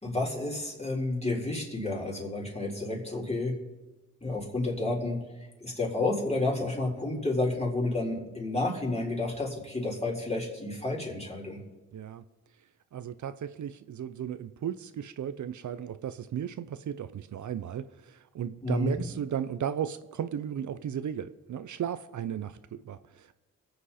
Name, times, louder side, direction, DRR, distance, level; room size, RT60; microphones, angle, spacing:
voice 1, 0.0-3.6 4.2-5.2 5.6-11.6 18.6-19.0, left 2 dB, 20° left, -2 dB, 4.4 m, -30 dB
voice 2, 11.9-12.2 12.9-23.3, right 9 dB, 65° right, 12 dB, 0.6 m, -35 dB
23.0 x 8.0 x 4.3 m, 1.2 s
cardioid pair, 60°, 32 cm